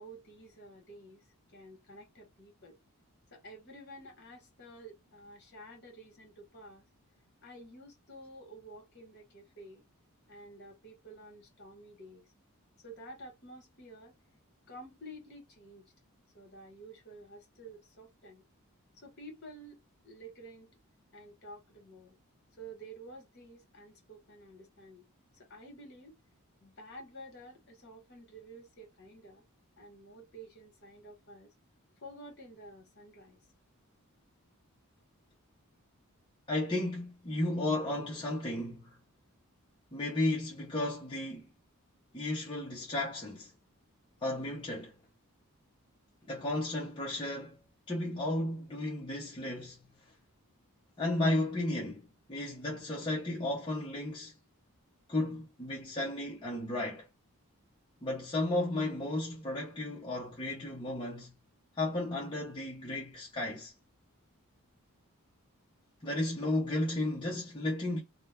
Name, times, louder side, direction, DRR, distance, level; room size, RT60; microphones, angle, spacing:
voice 1, 0.0-2.8 3.3-6.8 7.4-9.8 10.3-12.3 12.8-14.1 14.7-15.8 16.3-18.4 19.0-20.7 21.1-22.1 22.6-25.1 25.3-26.2 26.6-29.4 29.8-31.5 32.0-33.4, right 1 dB, 50° left, 1.3 m, -51 dB
voice 2, 36.5-39.0 39.9-41.5 42.1-43.5 44.2-44.9 46.3-47.6 47.9-49.8 51.0-54.3 55.1-57.1 58.0-61.3 61.8-63.7 66.0-68.0, left 1 dB, 20° left, 0.6 m, -34 dB
2.5 x 2.1 x 3.3 m
head